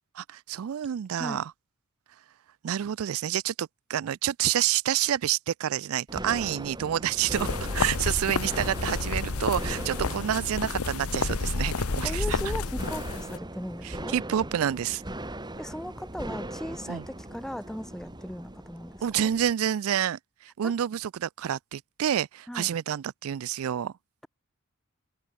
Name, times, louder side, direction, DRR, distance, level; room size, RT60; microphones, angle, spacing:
voice 1, 0.2-1.5 2.6-12.4 13.8-15.0 16.9-17.0 19.0-23.9, right 10 dB, 70° right, 0.4 m, -28 dB
sound 1, 6.1-19.5, right 1 dB, 20° right, 3.2 m, -40 dB
sound 2, 7.3-13.4, left 3 dB, 80° left, 1.1 m, -30 dB
voice 2, 12.0-14.1 15.6-19.3 20.6-20.7 22.5-22.7, equal, ahead, 0.8 m, -37 dB
open air
head